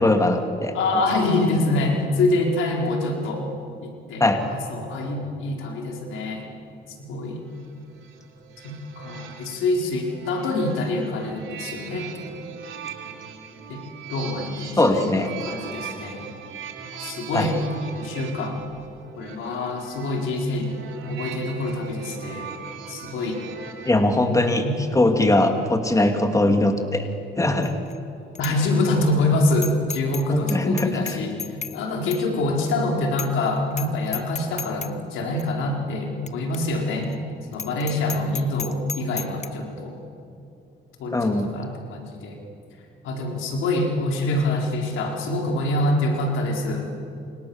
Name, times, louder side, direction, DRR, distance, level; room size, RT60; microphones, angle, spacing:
voice 1, 0.0-1.0 4.2-4.4 14.8-15.3 17.3-17.5 23.8-24.6 24.9-27.1 27.4-27.7 30.3-31.2 41.1-41.5, left 2 dB, 15° left, 5 dB, 2.6 m, -21 dB
voice 2, 0.7-3.5 3.8-6.5 7.1-7.4 8.6-12.1 13.7-13.8 14.1-15.1 15.4-16.3 16.9-17.7 18.0-18.6 19.2-20.7 21.1-22.5 22.9-23.4 24.6-24.7 28.4-31.4 31.7-37.1 37.5-39.9 41.0-42.4 43.0-46.9, left 2 dB, 85° left, 1 dB, 4.8 m, -25 dB
sound 1, 7.4-24.0, right 7 dB, 80° right, 3.5 m, -40 dB
Bicycle bell, 27.6-28.0 28.4-28.5 28.9-29.0 29.6-30.2 30.5-31.8 32.1-32.2 32.7-32.8 33.2-33.4 33.7-33.9 34.1-34.9 35.4-35.5 36.3-36.4 36.5-36.6 37.0-37.1 37.5-39.5, left 6 dB, 35° left, 1.3 m, -33 dB
29.5 x 26.5 x 7.3 m, 2.6 s
cardioid pair, 90°, 20 cm